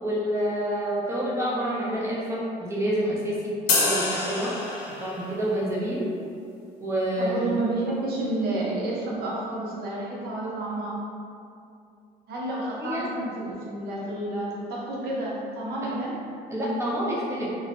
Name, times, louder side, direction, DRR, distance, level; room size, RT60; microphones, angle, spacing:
voice 1, 0.0-4.5 5.0-6.0 6.8-7.5 12.8-13.0 16.5-17.5, equal, 15° right, -6 dB, 0.7 m, -28 dB
sound 1, 3.7-5.3, left 3 dB, 75° left, 0.6 m, -26 dB
voice 2, 7.2-11.0 12.3-16.2, right 2 dB, 65° right, -4 dB, 0.7 m, -30 dB
3.0 x 2.1 x 2.8 m, 2.5 s
cardioid pair, 110°, 17 cm